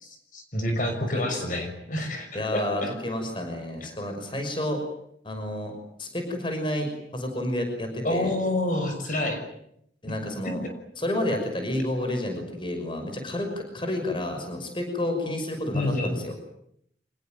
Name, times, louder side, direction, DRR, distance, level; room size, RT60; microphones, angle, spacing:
voice 1, 0.0-2.9 8.0-9.4 15.7-16.1, left 1 dB, 50° left, 5 dB, 6.3 m, -28 dB
voice 2, 1.1-1.4 2.3-4.8 5.2-5.7 6.0-8.3 10.0-10.6 11.0-16.3, left 1 dB, 30° left, 5 dB, 6.0 m, -30 dB
26.5 x 21.0 x 9.2 m, 0.72 s
head